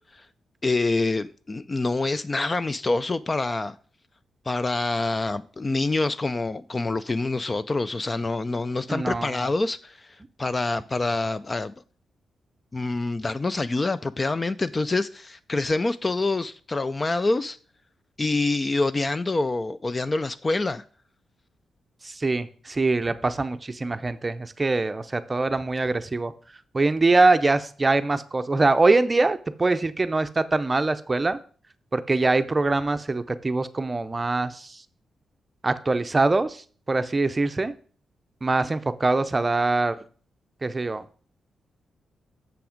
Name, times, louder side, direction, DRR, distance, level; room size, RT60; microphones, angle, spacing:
voice 1, 0.6-3.8 4.5-11.7 12.7-17.6 18.2-20.8, left 3 dB, 25° left, 0.3 m, -26 dB
voice 2, 8.9-9.4 22.0-26.3 26.7-31.4 31.9-34.8 35.6-36.6 36.9-37.7 38.4-40.0 40.6-41.0, right 3 dB, 25° right, 0.6 m, -23 dB
7.1 x 5.9 x 5.1 m
cardioid pair, 115°, 0 cm